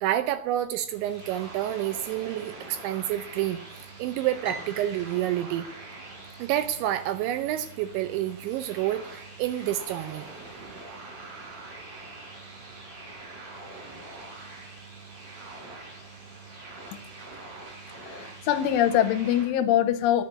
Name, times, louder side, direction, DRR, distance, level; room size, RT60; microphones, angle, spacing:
voice 1, 0.0-3.6 4.0-5.7 6.4-10.3, right 12 dB, 80° right, 10 dB, 2.7 m, -29 dB
sound 1, 0.9-19.5, right 3 dB, 55° right, 6.5 m, -44 dB
Piano, 4.4-6.7, right 2 dB, 30° right, 5.1 m, -43 dB
voice 2, 18.0-20.2, left 11 dB, 80° left, 8 dB, 3.0 m, -23 dB
11.0 x 8.2 x 9.3 m, 0.66 s
omnidirectional pair, 6.0 m